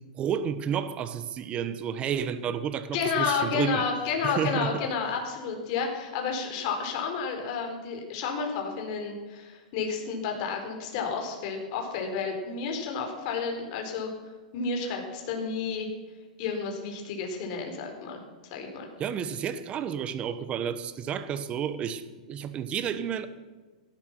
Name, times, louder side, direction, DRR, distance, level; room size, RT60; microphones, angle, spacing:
voice 1, 0.2-3.8 4.2-4.7 19.0-23.3, right 8 dB, 25° right, 1.2 m, -31 dB
voice 2, 2.9-14.1 14.5-15.9 16.4-18.2 18.5-18.9, left 5 dB, 50° left, 4.4 m, -31 dB
17.5 x 12.0 x 6.1 m
hypercardioid pair, 135°, 4 cm